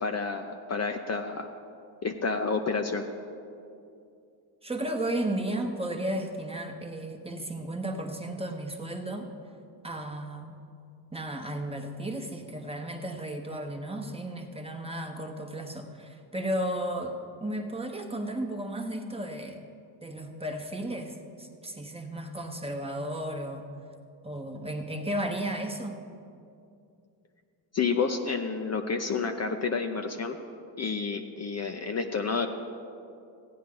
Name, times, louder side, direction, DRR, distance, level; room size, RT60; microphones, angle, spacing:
voice 1, 0.0-1.5 2.0-3.0 27.7-30.4 30.8-32.5, left 4 dB, 35° left, 4 dB, 0.7 m, -29 dB
voice 2, 4.6-9.3 9.8-10.5 11.1-19.6 20.0-23.7 24.2-26.0, right 1 dB, 10° right, 3 dB, 1.1 m, -34 dB
15.0 x 9.2 x 3.8 m, 2.5 s
cardioid pair, 80°, 46 cm